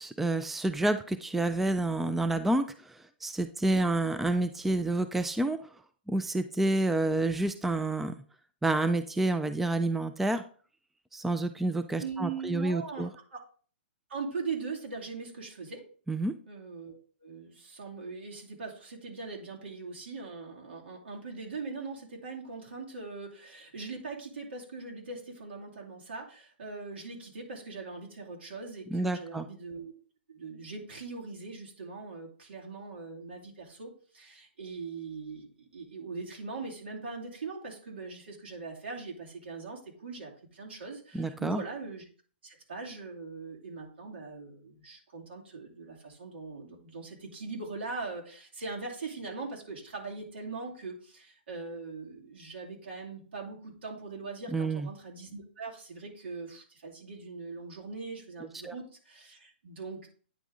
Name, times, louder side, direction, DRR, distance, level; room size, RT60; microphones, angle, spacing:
voice 1, 0.0-5.6 6.1-8.1 8.6-10.4 11.1-13.1 16.1-16.3 28.9-29.5 41.1-41.6 54.5-54.9 58.6-58.7, right 2 dB, 5° right, 10 dB, 0.3 m, -29 dB
voice 2, 11.9-13.4 14.1-15.8 16.5-29.9 30.3-42.0 42.4-60.1, right 4 dB, 80° right, -1 dB, 2.5 m, -41 dB
9.3 x 3.5 x 3.8 m, 0.42 s
hypercardioid pair, 135°, 6 cm